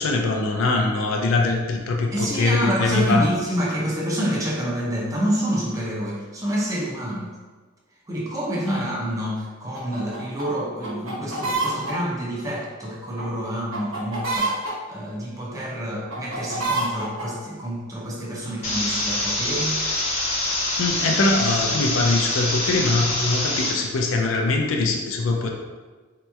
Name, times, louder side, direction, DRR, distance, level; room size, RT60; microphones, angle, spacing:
voice 1, 0.0-3.3 8.6-8.8 20.8-25.5, left 3 dB, 75° left, 2 dB, 0.4 m, -22 dB
voice 2, 2.1-7.4 8.1-19.8, right 1 dB, 15° right, -4 dB, 0.5 m, -27 dB
sound 1, 9.7-10.5 10.8-11.9 13.2-13.3 13.7-14.7 16.1-17.2, right 3 dB, 90° right, 1.2 m, -26 dB
sound 2, 18.6-23.7, left 1 dB, 30° left, 0.8 m, -25 dB
4.1 x 2.9 x 2.3 m, 1.4 s
head